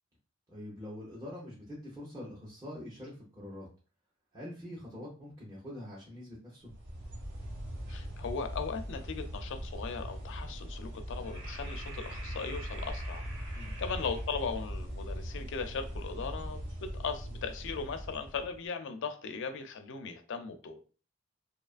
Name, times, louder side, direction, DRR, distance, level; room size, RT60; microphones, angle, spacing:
voice 1, 0.5-3.7 4.3-6.7 13.5-13.7, left 1 dB, 15° right, 0.7 m, -44 dB
sound 1, 6.6-18.6, equal, 60° right, 1.0 m, -40 dB
voice 2, 7.9-13.2 13.8-20.8, left 5 dB, 60° left, 0.4 m, -38 dB
2.7 x 2.4 x 2.4 m
head